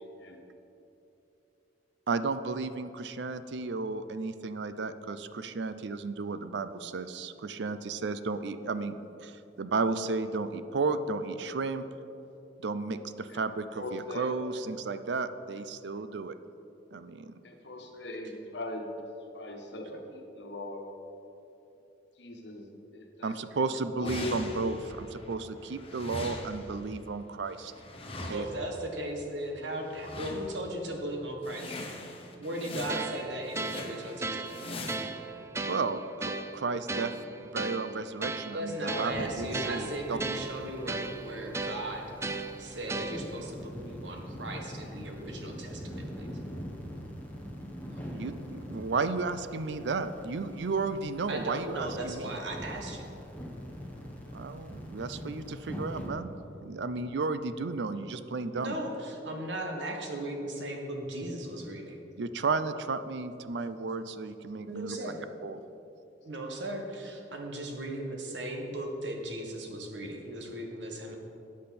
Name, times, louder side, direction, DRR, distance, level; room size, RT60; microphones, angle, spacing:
voice 1, 2.1-11.8 12.6-16.4 16.9-17.3 23.2-27.7 28.3-28.4 35.7-40.2 48.1-52.4 54.3-56.3 56.6-58.8 62.2-65.0 65.4-65.6, right 4 dB, 70° right, 12 dB, 0.5 m, -33 dB
voice 2, 13.7-14.3 17.4-18.9 19.3-20.8 22.2-22.7 22.9-23.3 24.0-24.4 25.3-25.4, left 2 dB, 70° left, 2 dB, 1.4 m, -40 dB
sound 1, 24.0-25.3 25.6-28.8 29.8-30.7 31.1-31.2 31.4-35.0, left 2 dB, 35° left, 1.1 m, -41 dB
voice 3, 28.3-31.7 32.4-34.5 38.5-42.0 42.6-46.3 51.3-53.1 58.6-62.0 64.6-65.2 66.2-71.1, right 1 dB, 90° right, 2 dB, 1.5 m, -37 dB
sound 2, 32.9-43.5, right 3 dB, 15° right, 0.4 m, -37 dB
sound 3, 39.1-56.1, equal, 10° left, 1.3 m, -43 dB
13.0 x 8.4 x 4.2 m, 2.9 s
head